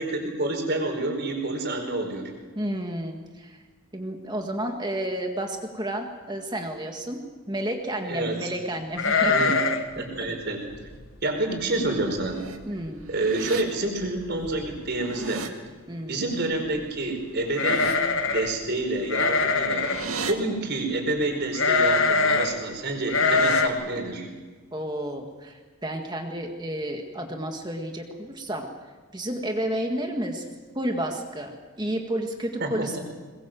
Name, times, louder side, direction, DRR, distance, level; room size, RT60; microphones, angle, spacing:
voice 1, 0.0-2.3 8.0-8.5 9.3-9.6 10.0-10.6 11.2-12.4 13.1-15.5 16.1-18.0 18.2-19.9 20.2-24.3 32.6-32.9, right 2 dB, 50° right, 3 dB, 4.9 m, -28 dB
voice 2, 2.5-3.6 3.9-9.4 10.2-10.3 12.7-13.0 15.9-16.3 24.7-28.7 29.1-30.5 30.8-33.0, right 1 dB, 20° right, 3 dB, 1.8 m, -31 dB
sound 1, 9.0-9.9 10.2-10.3 10.7-11.0 11.6-11.7 12.0-12.5 12.8-12.9 14.0-14.1 14.4-14.9 17.5-18.5 19.1-20.1 21.5-22.5 23.1-23.7, left 4 dB, 65° left, 1.7 m, -23 dB
sound 2, 12.0-12.6 13.0-13.6 14.8-15.5 17.3-18.0 19.2-20.3 22.9-23.6, right 4 dB, 80° right, 2.0 m, -37 dB
22.5 x 21.0 x 7.7 m, 1.4 s
head